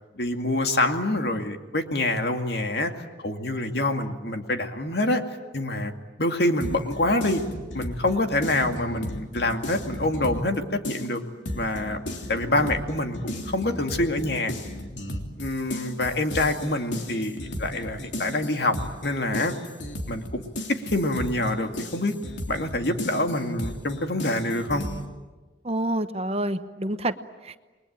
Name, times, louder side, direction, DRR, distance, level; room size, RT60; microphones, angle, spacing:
voice 1, 0.2-2.9 3.2-5.2 5.5-5.9 6.2-7.4 7.7-11.2 11.5-12.0 12.3-14.5 15.4-18.8 19.0-19.5 20.1-20.5 20.8-22.1 22.5-24.9, left 1 dB, 60° left, 5 dB, 2.3 m, -26 dB
sound 1, 6.6-10.6 10.8-25.0, left 1 dB, 85° left, 3.3 m, -35 dB
voice 2, 12.4-12.7 25.6-27.2 27.4-27.6, right 1 dB, 35° right, 10 dB, 0.9 m, -28 dB
29.0 x 22.0 x 8.9 m, 1.2 s
head